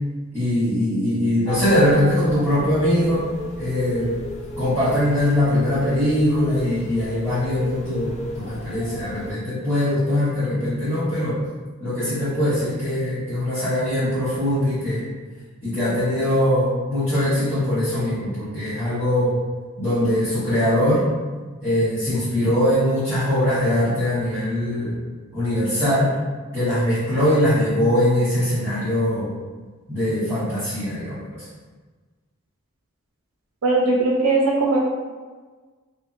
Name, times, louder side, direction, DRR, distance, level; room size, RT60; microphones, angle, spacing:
voice 1, 0.3-3.3 3.6-4.2 4.6-11.4 11.8-15.1 15.6-19.4 19.8-21.0 21.6-25.0 25.3-26.1 26.5-29.3 29.9-31.4, left 1 dB, 10° left, -16 dB, 1.1 m, -21 dB
sound 1, 1.4-9.3, left 1 dB, 35° left, 0.3 m, -34 dB
voice 2, 33.6-34.8, right 3 dB, 90° right, -3 dB, 0.4 m, -19 dB
2.6 x 2.6 x 2.4 m, 1.4 s
head